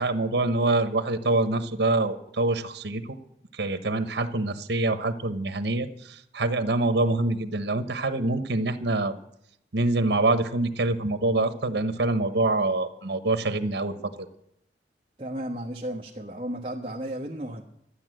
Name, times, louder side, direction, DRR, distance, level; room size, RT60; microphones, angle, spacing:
voice 1, 0.0-3.2 3.5-9.2 9.7-14.3, right 2 dB, 75° right, 10 dB, 1.1 m, -25 dB
voice 2, 15.2-17.6, right 1 dB, 30° right, -3 dB, 1.2 m, -34 dB
13.0 x 9.7 x 7.8 m, 0.74 s
head